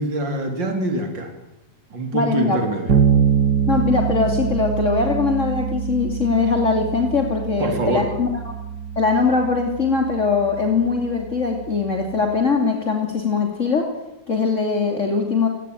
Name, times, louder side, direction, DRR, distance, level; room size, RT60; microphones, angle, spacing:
voice 1, 0.0-1.3 1.9-3.0 7.6-8.1, right 2 dB, 75° right, 5 dB, 4.1 m, -24 dB
voice 2, 2.1-2.6 3.7-8.5 9.0-13.9 14.3-15.5, left 4 dB, 40° left, 3 dB, 3.2 m, -21 dB
Bass guitar, 2.9-12.5, right 7 dB, 60° right, 3.1 m, -25 dB
30.0 x 19.0 x 9.3 m, 0.91 s
omnidirectional pair, 2.0 m